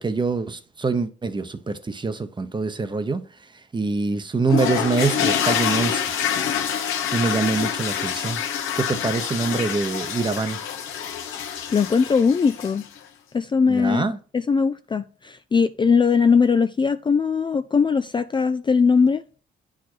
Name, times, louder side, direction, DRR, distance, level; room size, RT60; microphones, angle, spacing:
voice 1, 0.0-3.2 3.7-6.1 7.1-8.4 8.7-10.6 13.7-14.2, right 4 dB, 25° right, 0.9 m, -25 dB
sound 1, 4.5-13.0, left 8 dB, 85° left, 1.1 m, -26 dB
voice 2, 11.7-12.8 13.3-14.1 14.3-19.2, left 5 dB, 25° left, 0.4 m, -20 dB
9.0 x 4.9 x 4.4 m
cardioid pair, 90°, 20 cm